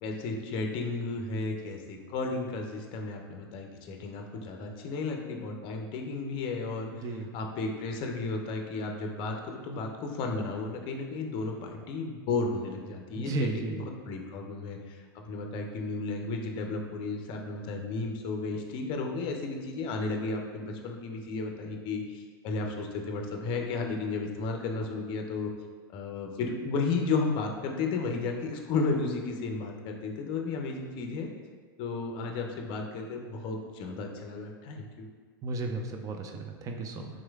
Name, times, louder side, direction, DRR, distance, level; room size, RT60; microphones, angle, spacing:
voice 1, 0.0-25.5 25.9-31.3 31.8-35.1, left 3 dB, 45° left, 3 dB, 0.5 m, -33 dB
voice 2, 13.2-13.9 35.4-37.1, right 3 dB, 30° right, 4 dB, 0.4 m, -34 dB
3.7 x 3.0 x 2.3 m, 1.5 s
hypercardioid pair, 100°, 12 cm